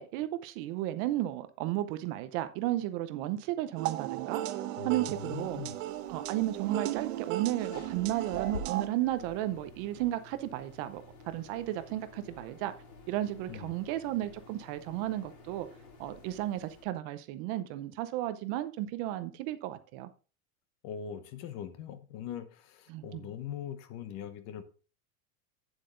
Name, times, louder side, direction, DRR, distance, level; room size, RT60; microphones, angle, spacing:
voice 1, 0.0-4.4 4.8-5.6 6.1-12.7 13.1-15.7 16.0-20.1 22.9-23.3, right 14 dB, 40° right, 0.7 m, -33 dB
sound 1, 3.8-8.9, right 14 dB, 65° right, 1.1 m, -36 dB
voice 2, 4.8-5.8 13.5-13.8 20.8-24.6, left 9 dB, 35° left, 0.9 m, -41 dB
sound 2, 5.1-16.8, left 4 dB, 85° left, 3.9 m, -50 dB
9.0 x 7.6 x 3.8 m
supercardioid pair, 170°, 42 cm